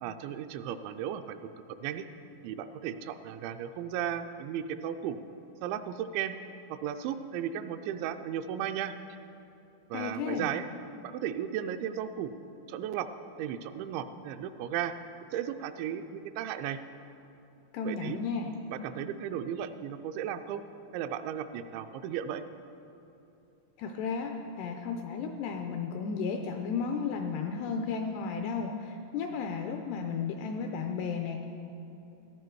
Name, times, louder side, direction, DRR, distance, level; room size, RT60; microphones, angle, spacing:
voice 1, 0.0-2.0 2.4-5.2 5.6-6.3 6.7-9.2 9.9-10.7 11.0-12.3 12.7-13.1 13.4-15.0 15.3-16.8 17.8-18.2 18.7-20.6 20.9-22.4, right 9 dB, 85° right, 9 dB, 2.8 m, -35 dB
voice 2, 9.9-10.5 17.7-18.5 23.8-31.5, left 5 dB, 85° left, 4 dB, 2.4 m, -34 dB
16.0 x 12.0 x 4.6 m, 2.9 s
omnidirectional pair, 5.3 m